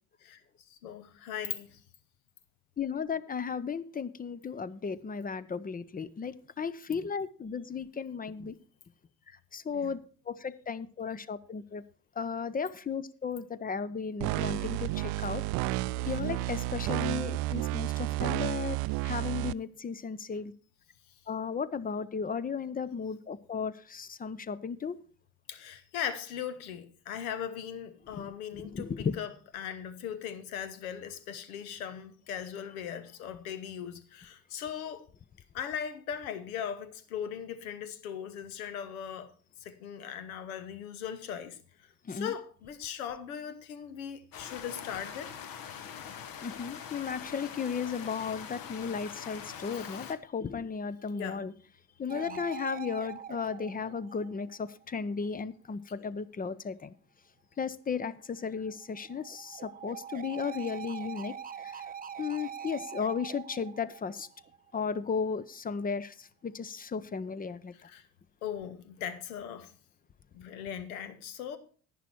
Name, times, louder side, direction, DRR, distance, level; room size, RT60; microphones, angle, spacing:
voice 1, 0.7-1.8 9.7-10.0 25.5-35.0 35.5-39.3 39.6-41.6 42.1-45.3 49.6-50.1 51.1-51.5 52.1-52.4 56.0-56.1 67.7-68.0 68.4-69.7 70.3-71.6, left 9 dB, 75° left, 1.1 m, -39 dB
voice 2, 2.8-8.6 9.5-10.0 10.3-11.8 12.2-15.4 16.0-18.8 19.0-20.5 21.3-25.0 28.1-29.2 42.1-42.3 46.4-51.5 52.0-56.9 57.6-61.3 61.6-61.8 62.2-64.3 64.7-67.7, left 6 dB, 20° left, 0.6 m, -35 dB
sound 1, 14.2-19.5, right 19 dB, 55° right, 0.5 m, -31 dB
sound 2, 44.3-50.1, left 8 dB, 50° left, 1.2 m, -43 dB
sound 3, 52.1-54.8 58.4-64.8, right 8 dB, 20° right, 0.7 m, -44 dB
11.0 x 9.4 x 4.4 m
figure-of-eight pair, 50°, 44 cm